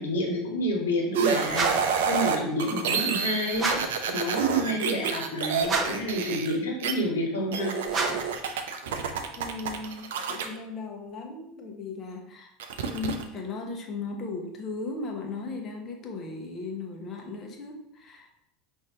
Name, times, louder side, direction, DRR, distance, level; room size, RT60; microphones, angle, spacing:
voice 1, 0.0-7.7, left 1 dB, 75° left, -1 dB, 1.1 m, -29 dB
sound 1, 1.1-6.9 7.5-10.5 12.6-13.2, right 7 dB, 70° right, 0.5 m, -28 dB
sound 2, 1.5-2.0 3.5-4.0 5.6-6.1 7.9-8.4, right 3 dB, 25° right, 0.8 m, -29 dB
voice 2, 9.4-12.5 12.8-18.5, left 4 dB, 35° left, 2 dB, 0.9 m, -37 dB
5.3 x 2.7 x 3.5 m, 0.78 s
figure-of-eight pair, 75°, 0 cm